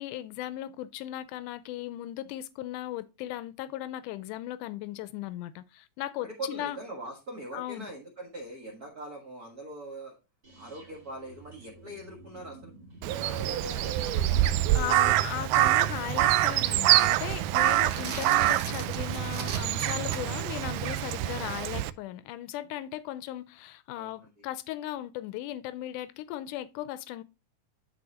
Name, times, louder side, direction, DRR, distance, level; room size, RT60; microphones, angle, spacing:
voice 1, 0.0-6.8 7.5-7.9 14.7-27.2, left 14 dB, 90° left, 2.1 m, -37 dB
voice 2, 6.2-10.2 10.6-12.7 13.1-14.4 23.9-24.3, right 1 dB, 40° right, 1.5 m, -42 dB
sound 1, 10.4-18.3, right 2 dB, 25° right, 1.4 m, -50 dB
Crow, 13.0-21.9, right 14 dB, 85° right, 2.1 m, -26 dB
sound 2, 17.7-20.5, right 6 dB, 70° right, 1.0 m, -40 dB
11.5 x 4.2 x 2.9 m
omnidirectional pair, 3.6 m